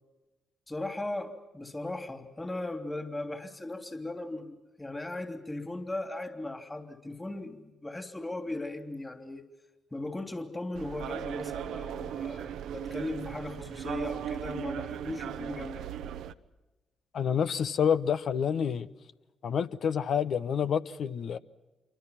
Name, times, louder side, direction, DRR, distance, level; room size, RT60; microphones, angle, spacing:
voice 1, 0.7-9.4 9.9-15.8, left 2 dB, 20° left, 3.3 m, -37 dB
sound 1, 10.7-16.3, right 10 dB, 75° right, 0.9 m, -37 dB
voice 2, 17.1-18.9 19.4-21.4, left 7 dB, 65° left, 1.1 m, -28 dB
28.0 x 24.0 x 5.9 m
supercardioid pair, 55°, 0 cm